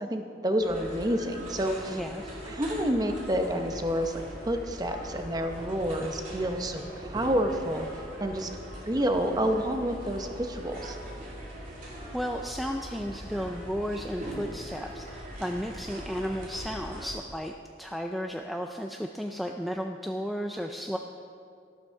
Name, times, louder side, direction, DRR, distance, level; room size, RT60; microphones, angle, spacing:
voice 1, 0.0-2.0 2.5-7.9 8.2-8.5 8.9-11.0, equal, 20° right, 5 dB, 0.8 m, -29 dB
sound 1, 0.6-17.1, equal, 45° right, 2.9 m, -41 dB
voice 2, 1.9-2.4 11.7-21.0, equal, ahead, 3 dB, 0.3 m, -34 dB
12.5 x 12.5 x 4.6 m, 2.5 s
head